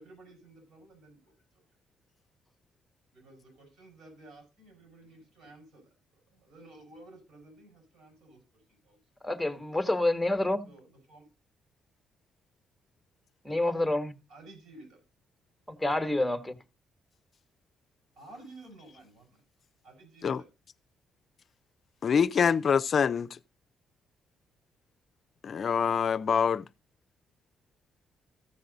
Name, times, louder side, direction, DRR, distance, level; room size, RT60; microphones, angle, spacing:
voice 1, 0.0-1.3 3.1-9.0 10.7-11.3 14.3-15.0 18.2-19.4 19.8-20.5, right 2 dB, 75° right, 5.9 m, -53 dB
voice 2, 9.2-10.7 13.4-14.2 15.7-16.6, left 1 dB, 5° left, 1.2 m, -28 dB
voice 3, 22.0-23.4 25.4-26.7, left 6 dB, 50° left, 0.4 m, -25 dB
15.0 x 6.4 x 4.0 m
cardioid pair, 90°, 0 cm